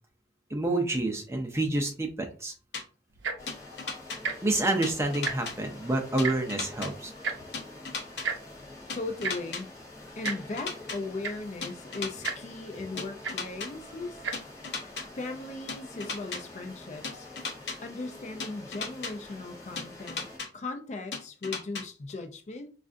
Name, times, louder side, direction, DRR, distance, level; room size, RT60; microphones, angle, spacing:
voice 1, 0.5-2.5 4.4-7.1, right 2 dB, 15° right, 0.6 m, -28 dB
sound 1, 2.7-2.8 3.5-4.2 4.8-5.5 6.2-6.9 7.5-8.3 8.9-9.6 10.2-11.0 11.6-12.3 13.0-13.7 14.3-15.0 15.7-16.4 17.0-17.8 18.4-19.1 19.8-20.5 21.1-21.8, left 4 dB, 60° left, 0.7 m, -35 dB
Tick-tock, 3.1-3.5 4.2-4.4 4.7-4.8 5.1-5.6 6.2-6.4 7.2-7.4 8.2-8.4 9.2-9.3 10.2-10.4 10.9-11.0 11.2-11.5 12.2-12.4 13.2-13.4 14.1-14.3 15.1-15.2, right 5 dB, 70° right, 0.6 m, -32 dB
sound 2, 3.4-20.4, left 2 dB, 15° left, 0.8 m, -47 dB
voice 2, 8.9-9.7 10.2-14.2 15.2-17.3 17.8-22.7, left 3 dB, 35° left, 0.3 m, -38 dB
5.2 x 2.4 x 2.4 m
head